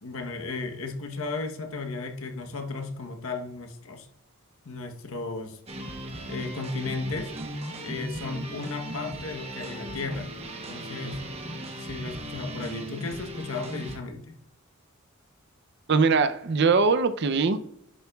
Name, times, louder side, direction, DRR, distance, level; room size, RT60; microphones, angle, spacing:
voice 1, 0.0-4.1 4.6-5.6 6.3-7.3 7.8-10.3 10.7-11.3 11.8-14.4, left 3 dB, 70° left, 5 dB, 1.0 m, -35 dB
sound 1, 5.7-14.0, right 1 dB, 30° right, 0.9 m, -37 dB
voice 2, 15.9-17.6, right 4 dB, 50° right, 11 dB, 0.5 m, -21 dB
10.5 x 6.8 x 2.3 m, 0.78 s
head